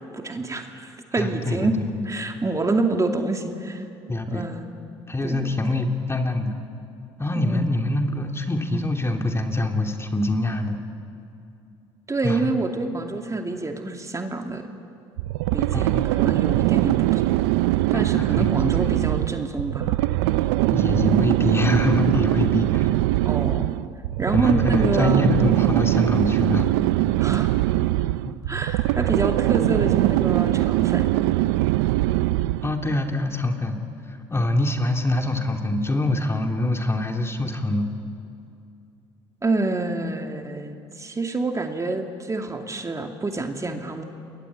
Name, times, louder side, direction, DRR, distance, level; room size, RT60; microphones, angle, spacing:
voice 1, 0.1-1.7 2.0-3.8 4.3-4.7 5.2-5.8 7.3-7.7 12.1-14.6 15.5-17.3 17.9-20.0 23.2-23.8 24.2-25.3 27.2-27.5 28.5-31.2 39.4-44.0, right 3 dB, 25° right, 3 dB, 2.6 m, -27 dB
voice 2, 1.2-1.7 4.1-4.4 5.1-6.6 7.2-10.8 12.2-12.5 15.7-16.1 17.9-19.1 20.7-22.9 24.3-26.7 28.2-28.4 32.6-33.8 34.1-37.9, left 2 dB, 20° left, 3 dB, 3.0 m, -24 dB
sound 1, 15.2-32.8, right 17 dB, 80° right, 0.6 m, -22 dB
28.5 x 22.0 x 8.5 m, 2.6 s
hypercardioid pair, 60°, 13 cm